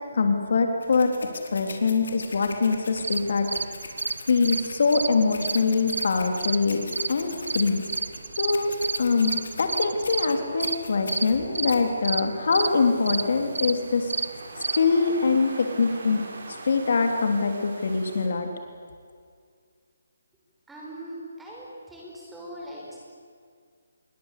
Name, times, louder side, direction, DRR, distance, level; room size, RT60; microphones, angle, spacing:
voice 1, 0.1-1.1 1.5-3.5 4.3-6.8 7.1-7.8 8.4-8.7 9.0-14.1 14.8-16.2 16.5-18.5, left 4 dB, 55° left, 5 dB, 3.3 m, -23 dB
sound 1, 0.8-11.9, left 3 dB, 75° left, 4.8 m, -42 dB
sound 2, 3.0-14.8, right 4 dB, 75° right, 1.2 m, -32 dB
sound 3, 12.5-18.3, right 3 dB, 60° right, 6.4 m, -42 dB
voice 2, 20.7-23.0, right 1 dB, 5° right, -4 dB, 5.2 m, -40 dB
28.0 x 23.0 x 8.4 m, 2.1 s
hypercardioid pair, 170°, 0 cm